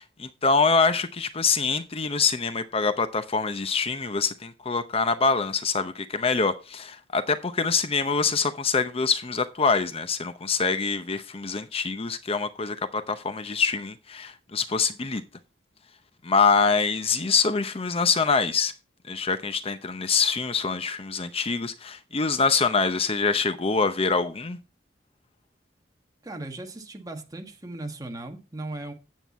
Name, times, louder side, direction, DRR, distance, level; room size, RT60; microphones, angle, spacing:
voice 1, 0.0-15.2 16.2-18.7 19.0-24.6, left 4 dB, 35° left, 0.7 m, -25 dB
voice 2, 26.2-28.9, right 2 dB, 20° right, 1.6 m, -37 dB
9.1 x 7.9 x 4.2 m
head